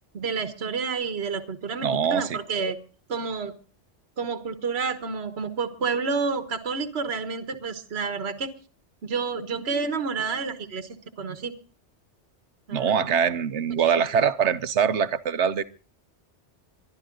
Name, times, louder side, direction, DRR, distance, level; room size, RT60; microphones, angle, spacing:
voice 1, 0.1-2.8 3.1-3.5 4.2-8.5 9.0-11.5 12.7-13.1 13.9-14.1, right 5 dB, 65° right, 9 dB, 1.5 m, -29 dB
voice 2, 1.8-2.7 12.7-15.6, right 7 dB, 80° right, 13 dB, 1.2 m, -23 dB
22.5 x 12.0 x 3.8 m, 0.38 s
omnidirectional pair, 1.2 m